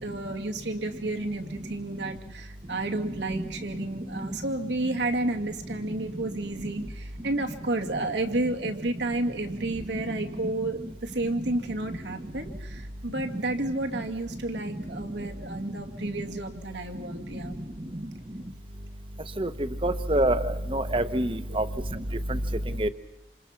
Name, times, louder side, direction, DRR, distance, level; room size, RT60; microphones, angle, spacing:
voice 1, 0.0-17.5 21.5-21.6, right 2 dB, 80° right, 4 dB, 2.5 m, -31 dB
voice 2, 19.8-21.7 22.8-22.9, right 1 dB, 30° right, 11 dB, 1.0 m, -25 dB
28.0 x 27.5 x 5.9 m, 0.88 s
head